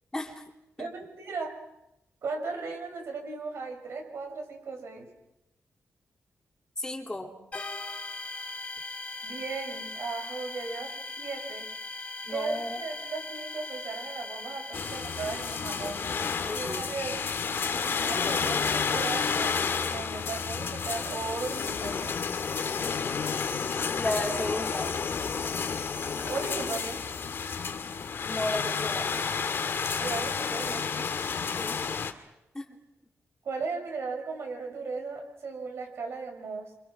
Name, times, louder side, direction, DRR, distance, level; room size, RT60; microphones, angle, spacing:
voice 1, 0.1-0.4 0.8-0.9 6.8-7.3 12.3-12.8 16.4-17.0 24.0-24.9 28.3-29.1 31.6-31.8 32.5-32.8, left 1 dB, 15° left, 2 dB, 3.0 m, -33 dB
voice 2, 0.8-1.5 2.2-5.1 9.2-10.9 11.2-11.7 12.3-16.0 16.5-17.4 17.7-22.1 26.2-27.0 30.0-31.1 33.4-36.7, right 4 dB, 65° right, 3 dB, 6.2 m, -36 dB
sound 1, 7.5-16.9, left 2 dB, 30° left, 3.0 m, -40 dB
sound 2, 14.7-32.1, left 6 dB, 55° left, 2.0 m, -31 dB
28.5 x 26.0 x 6.2 m, 0.89 s
wide cardioid pair, 150°, 5 cm